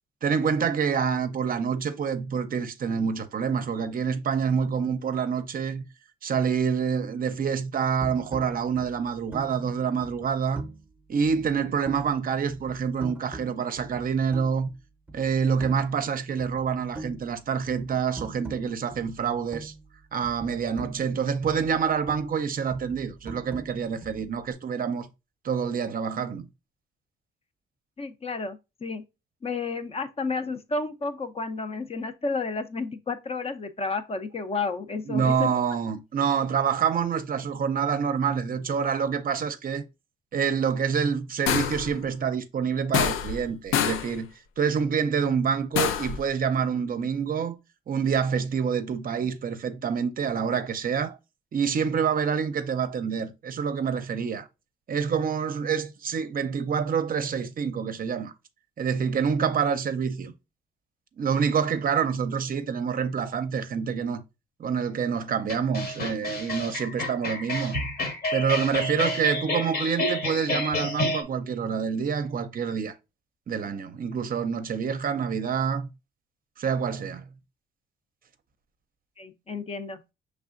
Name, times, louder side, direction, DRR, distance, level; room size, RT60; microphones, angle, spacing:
voice 1, 0.2-5.8 6.2-10.6 11.1-14.7 15.1-19.7 20.1-25.1 25.4-26.5 35.1-39.8 40.3-44.3 44.6-47.6 47.9-51.2 51.5-54.5 54.9-58.3 58.8-60.3 61.2-64.2 64.6-67.8 68.3-72.9 73.5-75.9 76.6-77.3, right 6 dB, 45° right, 0.5 m, -27 dB
sound 1, 8.0-10.9 11.2-12.2 12.5-14.7 15.1-16.1 16.4-20.0 20.2-22.4 22.7-24.5, right 2 dB, 10° right, 0.8 m, -43 dB
voice 2, 28.0-29.0 29.4-35.5 79.2-80.0, left 3 dB, 30° left, 0.5 m, -31 dB
sound 2, 41.5-41.9 42.9-43.5 43.7-44.1 45.7-46.2, left 9 dB, 90° left, 0.5 m, -25 dB
sound 3, 65.5-71.2, left 1 dB, 50° left, 1.2 m, -29 dB
5.4 x 3.3 x 2.4 m
cardioid pair, 90°, 20 cm